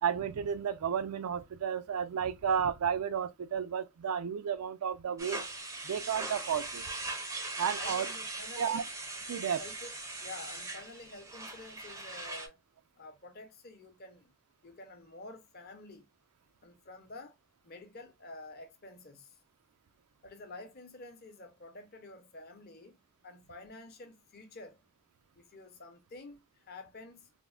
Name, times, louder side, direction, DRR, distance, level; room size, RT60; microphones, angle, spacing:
voice 1, 0.0-5.4 5.8-6.9 7.6-8.1 8.6-8.8 9.3-9.6, right 7 dB, 80° right, 0.4 m, -32 dB
sound 1, 5.2-12.5, right 2 dB, 15° right, 0.4 m, -40 dB
voice 2, 7.8-8.9 9.6-9.9 10.2-12.6 13.0-14.3 14.6-16.1 16.6-17.4 17.6-19.4 20.2-23.0 23.2-24.8 25.3-27.3, left 2 dB, 45° left, 0.6 m, -49 dB
3.4 x 2.0 x 2.3 m
head